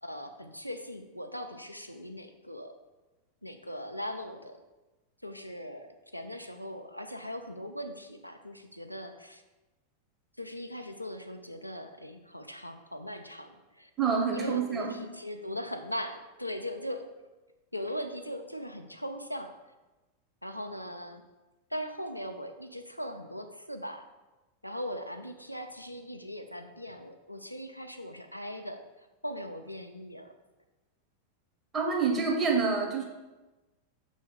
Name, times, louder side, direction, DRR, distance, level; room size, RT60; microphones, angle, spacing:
voice 1, 0.0-2.7 3.4-4.6 5.2-5.9 6.1-9.4 10.4-13.9 14.3-17.1 17.7-19.5 20.4-21.2 21.7-24.0 24.6-30.3, equal, 90° left, 6 dB, 0.5 m, -39 dB
voice 2, 14.0-15.0 31.7-33.0, right 5 dB, 20° right, 0 dB, 1.4 m, -27 dB
6.2 x 3.4 x 5.4 m, 1.1 s
figure-of-eight pair, 90°, 0 cm